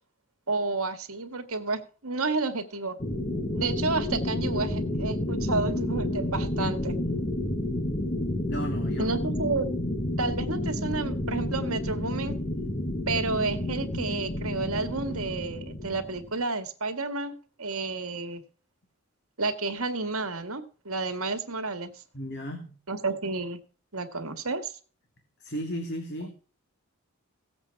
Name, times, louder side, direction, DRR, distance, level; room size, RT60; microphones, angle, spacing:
voice 1, 0.5-3.0 3.5-6.9 9.0-9.7 10.2-12.4 13.1-17.3 17.6-18.4 19.4-22.0 22.9-23.6 23.9-24.7, right 3 dB, 75° right, 9 dB, 2.0 m, -31 dB
sound 1, 3.0-16.3, left 1 dB, 30° left, 1.6 m, -30 dB
voice 2, 8.5-9.1 22.1-22.8 25.4-26.3, equal, 50° left, 3 dB, 2.2 m, -34 dB
17.0 x 8.0 x 4.7 m, 0.39 s
head